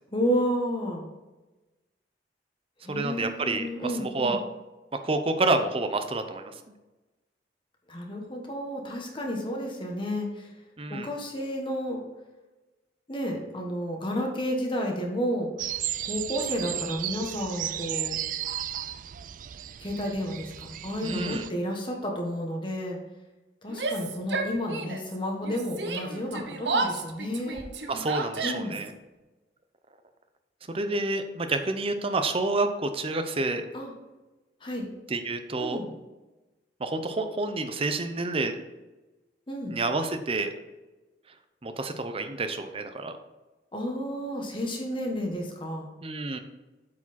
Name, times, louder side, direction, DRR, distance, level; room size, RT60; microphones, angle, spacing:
voice 1, 0.1-1.1 2.8-4.4 7.9-10.5 10.9-12.0 13.1-15.5 16.1-18.2 19.8-23.0 23.6-27.6 28.4-28.8 33.7-33.9 34.6-34.9 35.6-35.9 39.5-39.8 43.7-45.9, equal, 30° left, 0 dB, 1.3 m, -31 dB
voice 2, 2.9-4.4 5.0-6.5 10.8-11.1 21.0-21.4 27.9-28.9 30.7-33.7 35.1-35.8 36.8-38.6 39.7-40.5 41.6-43.1 46.0-46.4, right 2 dB, 35° right, 7 dB, 0.7 m, -29 dB
sound 1, 15.6-21.5, right 12 dB, 50° right, 0.3 m, -34 dB
Yell, 23.7-25.1 25.4-28.9, right 3 dB, 75° right, 0.9 m, -32 dB
8.5 x 4.9 x 4.2 m, 1.1 s
head